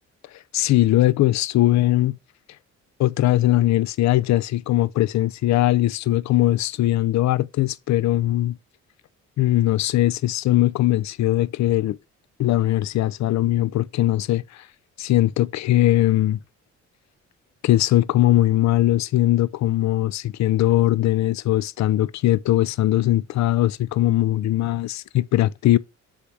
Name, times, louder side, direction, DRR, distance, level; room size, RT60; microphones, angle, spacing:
voice 1, 0.5-2.2 3.0-8.6 9.4-12.0 12.4-14.6 15.0-16.4 17.6-25.8, left 15 dB, 65° left, 0.5 m, -20 dB
7.2 x 3.4 x 4.9 m
cardioid pair, 90°, 30 cm